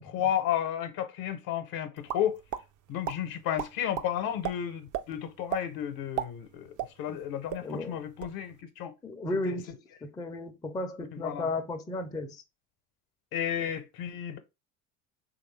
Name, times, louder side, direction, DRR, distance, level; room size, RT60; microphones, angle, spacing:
voice 1, 0.0-2.4 2.9-8.9 9.4-9.5 11.1-11.5 13.3-14.4, left 10 dB, 60° left, 0.8 m, -32 dB
sound 1, 2.1-2.6 3.0-3.2 3.6-4.1 4.4-4.5 4.9-5.0 5.5-5.6 6.0-7.2 7.5-7.6 8.0-8.3, right 11 dB, 50° right, 0.4 m, -33 dB
voice 2, 7.6-8.0 9.0-9.7 10.0-12.4, left 2 dB, 10° left, 0.4 m, -34 dB
3.2 x 2.6 x 3.1 m
hypercardioid pair, 75°, 42 cm